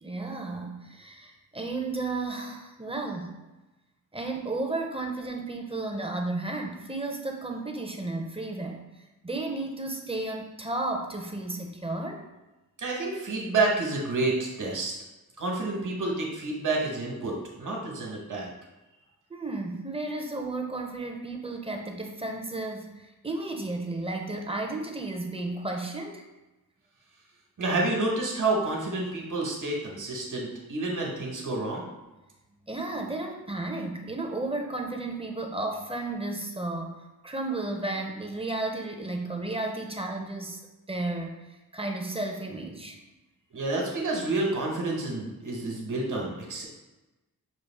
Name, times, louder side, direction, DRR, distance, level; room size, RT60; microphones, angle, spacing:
voice 1, 0.0-3.4 4.1-8.8 9.2-12.2 19.3-26.2 32.7-37.0 37.2-40.6 40.9-41.4 41.7-43.0, right 2 dB, 15° right, 2 dB, 0.5 m, -33 dB
voice 2, 12.8-14.9 15.4-18.5 27.6-31.8 43.5-46.6, right 2 dB, 55° right, -2 dB, 1.3 m, -29 dB
6.2 x 2.4 x 3.5 m, 1.1 s
wide cardioid pair, 115°, 37 cm